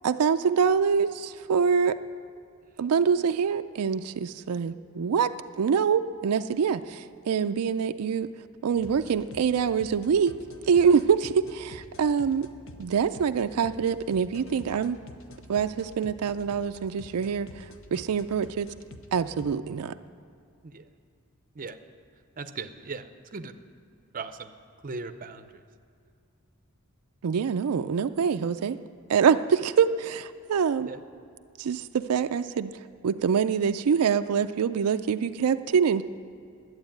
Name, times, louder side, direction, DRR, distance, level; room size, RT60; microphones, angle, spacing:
voice 1, 0.0-2.0 2.8-8.3 8.6-10.3 10.7-12.5 12.8-15.0 15.5-18.7 19.1-19.9 27.2-28.8 29.1-30.9 31.6-32.7 33.0-36.0, right 6 dB, 90° right, 10 dB, 0.4 m, -25 dB
sound 1, 8.7-19.5, left 2 dB, 60° left, 0.8 m, -48 dB
voice 2, 22.4-23.5 24.1-24.5 24.8-25.6 30.8-31.0, right 4 dB, 40° right, 9 dB, 0.6 m, -38 dB
11.5 x 8.0 x 9.0 m, 2.4 s
head